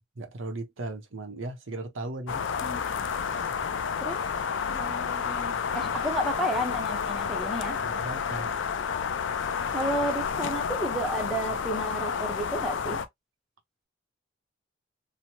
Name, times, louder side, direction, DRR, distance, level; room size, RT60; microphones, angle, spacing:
voice 1, 0.2-2.5 3.4-3.6 7.8-8.5, right 2 dB, 70° right, 0.7 m, -37 dB
sound 1, 2.3-13.1, left 6 dB, 65° left, 0.4 m, -30 dB
voice 2, 4.7-7.8 9.7-13.0, equal, ahead, 0.6 m, -32 dB
2.9 x 2.1 x 2.8 m
head